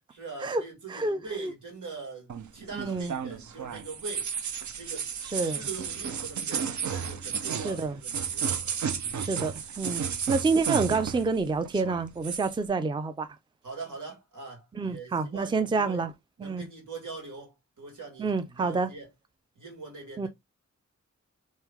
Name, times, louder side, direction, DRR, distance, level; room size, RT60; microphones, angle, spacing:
voice 1, 0.1-4.3 4.8-5.1 5.4-8.5 9.0-9.3 13.6-16.0 16.4-19.1 19.6-20.3, right 4 dB, 85° right, 2.1 m, -42 dB
voice 2, 0.9-1.5 2.7-3.1 5.3-5.6 7.6-7.9 9.2-13.3 14.7-16.1 16.4-16.7 18.2-18.9 20.2-20.3, right 4 dB, 15° right, 0.4 m, -28 dB
sound 1, 2.3-11.4 11.6-12.5, right 7 dB, 70° right, 0.6 m, -33 dB
3.3 x 3.1 x 3.5 m
wide cardioid pair, 95°, 30 cm